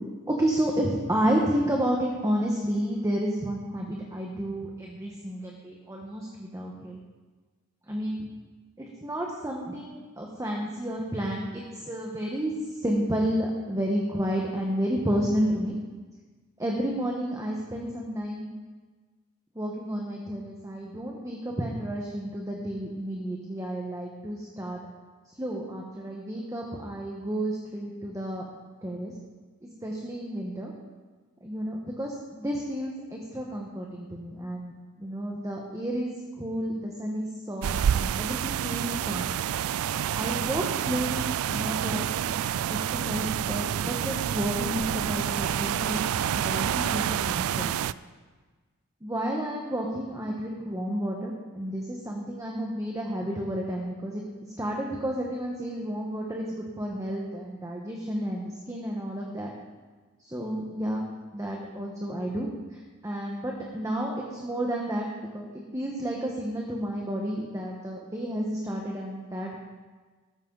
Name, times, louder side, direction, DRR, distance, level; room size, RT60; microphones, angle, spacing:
voice 1, 0.3-7.0 7.9-8.3 8.8-15.7 16.6-18.5 19.5-24.8 25.3-28.5 28.8-29.1 29.8-30.7 31.4-39.4 40.2-42.1 42.7-47.8 49.0-54.2 54.6-56.5 56.8-59.5 60.2-61.1 61.3-62.5 62.7-69.6, equal, 15° right, -1 dB, 1.3 m, -31 dB
sound 1, 37.6-47.9, right 9 dB, 70° right, 0.3 m, -28 dB
14.5 x 12.5 x 4.0 m, 1.4 s
head